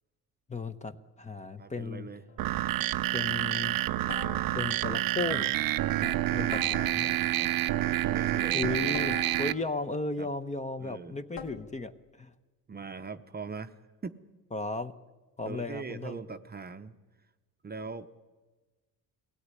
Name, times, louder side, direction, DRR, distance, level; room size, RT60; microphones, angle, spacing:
voice 1, 0.5-2.1 3.1-3.8 4.5-5.5 6.0-7.1 8.5-11.9 12.2-12.3 14.5-14.9 15.4-16.2, left 3 dB, 20° left, 11 dB, 0.9 m, -35 dB
voice 2, 1.6-2.2 6.3-6.7 7.0-7.5 8.0-9.0 10.2-10.3 10.8-11.2 12.7-13.7 14.0-14.1 15.5-16.9 17.6-18.1, right 4 dB, 25° right, 9 dB, 0.8 m, -41 dB
sound 1, 2.3-2.6 4.1-4.9 6.5-7.3 8.9-9.9 11.4-11.9, left 6 dB, 70° left, 2.9 m, -44 dB
sound 2, 2.4-9.5, right 14 dB, 65° right, 0.7 m, -28 dB
23.0 x 17.0 x 9.8 m, 1.3 s
cardioid pair, 125°, 37 cm